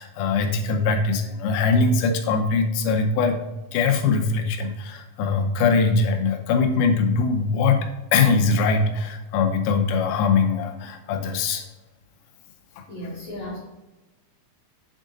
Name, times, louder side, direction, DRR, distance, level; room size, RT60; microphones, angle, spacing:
voice 1, 0.0-3.4 3.7-11.7 12.8-12.9, left 4 dB, 90° left, 4 dB, 1.8 m, -22 dB
voice 2, 12.9-13.6, left 1 dB, 65° left, -2 dB, 1.8 m, -34 dB
8.3 x 3.7 x 3.8 m, 1.1 s
omnidirectional pair, 4.6 m